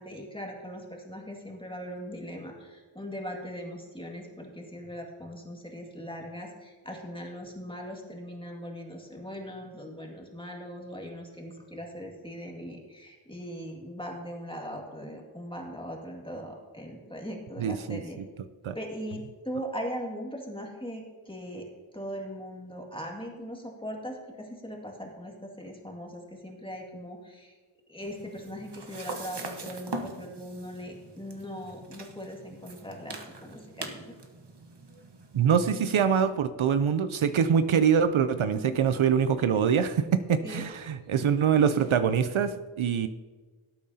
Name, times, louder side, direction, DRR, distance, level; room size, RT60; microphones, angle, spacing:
voice 1, 0.0-18.2 18.7-21.7 21.9-27.6 27.9-34.1 38.5-38.8 40.4-40.7, equal, 10° left, 0 dB, 2.0 m, -40 dB
voice 2, 17.6-18.0 18.6-18.8 35.3-43.1, right 7 dB, 70° right, 11 dB, 0.6 m, -24 dB
sound 1, 28.0-36.3, right 3 dB, 55° right, 1.2 m, -43 dB
18.0 x 8.6 x 2.8 m, 1.4 s
wide cardioid pair, 80°, 50 cm